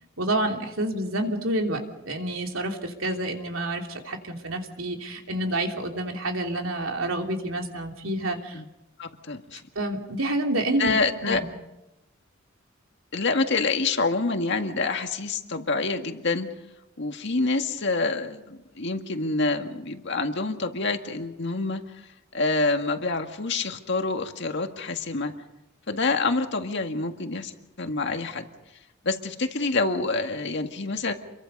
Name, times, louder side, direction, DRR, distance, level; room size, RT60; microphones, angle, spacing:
voice 1, 0.2-8.6 9.7-10.9 11.2-11.4, right 1 dB, 80° right, 3 dB, 3.1 m, -28 dB
voice 2, 9.0-9.6 10.8-11.4 13.1-16.5 17.0-22.1 22.3-25.3 25.9-27.5 27.8-28.5 29.0-31.1, left 3 dB, 60° left, 5 dB, 1.9 m, -27 dB
28.0 x 23.0 x 5.4 m, 0.95 s
head